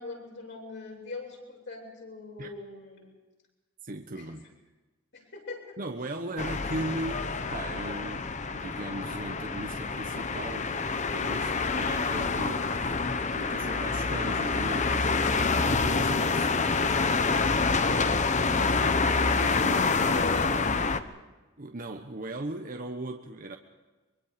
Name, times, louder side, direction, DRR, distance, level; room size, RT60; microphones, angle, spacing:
voice 1, 0.0-3.1 4.1-4.3 5.1-5.8 6.3-6.4 20.1-20.6 20.9-21.1, left 2 dB, 60° left, -1 dB, 7.9 m, -41 dB
voice 2, 3.8-4.4 5.8-13.0 13.3-17.0 17.3-17.5 19.3-20.0 21.6-23.6, right 1 dB, 40° right, 4 dB, 1.2 m, -38 dB
sound 1, 6.4-21.0, left 4 dB, 35° left, 1.0 m, -27 dB
24.0 x 24.0 x 5.2 m, 1.2 s
head